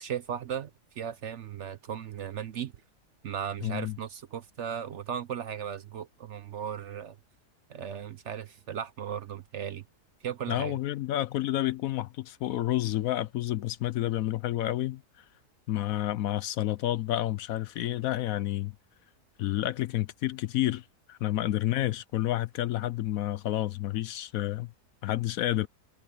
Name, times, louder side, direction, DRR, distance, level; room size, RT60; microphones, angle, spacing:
voice 1, 0.0-2.7 3.2-7.2 7.7-9.8 10.2-10.8, right 8 dB, 60° right, 0.9 m, -36 dB
voice 2, 3.6-4.0 10.5-15.2 15.7-18.7 19.4-24.7 25.0-25.7, left 14 dB, 70° left, 0.9 m, -30 dB
omnidirectional pair, 1.7 m